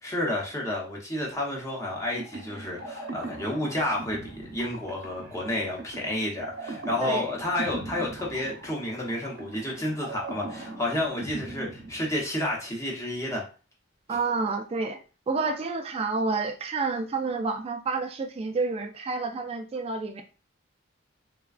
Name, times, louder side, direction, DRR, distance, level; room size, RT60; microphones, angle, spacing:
voice 1, 0.0-13.4, left 1 dB, 15° left, -3 dB, 0.9 m, -30 dB
sound 1, 1.9-12.6, right 2 dB, 65° right, 0.7 m, -40 dB
voice 2, 14.1-15.0 15.3-20.2, right 4 dB, 30° right, 5 dB, 0.3 m, -29 dB
3.3 x 2.3 x 2.3 m, 0.34 s
head